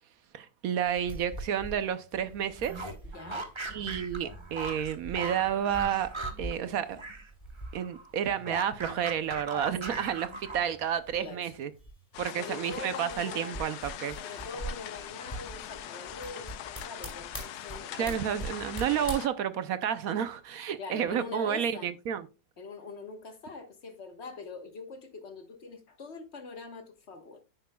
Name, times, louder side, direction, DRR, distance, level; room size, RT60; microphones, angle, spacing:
voice 1, 0.3-2.9 3.7-6.1 6.4-7.0 7.7-11.7 12.2-14.2 17.9-22.3, right 9 dB, 65° right, 1.0 m, -31 dB
sound 1, 0.8-19.1, right 1 dB, 20° left, 4.7 m, -44 dB
sound 2, 2.6-7.3 7.6-10.9, right 2 dB, 20° right, 0.9 m, -40 dB
voice 2, 3.1-3.5 11.1-11.5 12.3-13.7 14.2-18.2 20.8-21.9 22.6-27.4, left 4 dB, 45° left, 1.5 m, -43 dB
sound 3, 12.1-19.3, left 11 dB, 75° left, 1.2 m, -42 dB
10.5 x 8.8 x 2.3 m
omnidirectional pair, 1.8 m